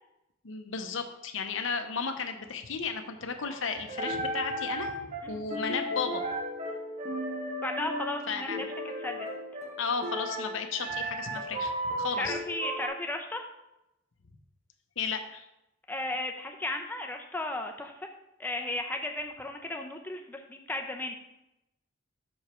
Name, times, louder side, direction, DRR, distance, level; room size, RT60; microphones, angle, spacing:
voice 1, 0.4-5.0 5.3-6.2 8.3-8.7 9.8-12.4 15.0-15.5, left 5 dB, 70° left, 6 dB, 0.7 m, -34 dB
sound 1, 3.4-12.9, right 1 dB, 40° right, 0.8 m, -35 dB
voice 2, 7.6-8.7 9.0-9.3 12.2-13.4 15.9-18.1 18.4-21.1, left 2 dB, 10° left, 3 dB, 0.6 m, -35 dB
6.3 x 4.9 x 4.3 m, 0.88 s
head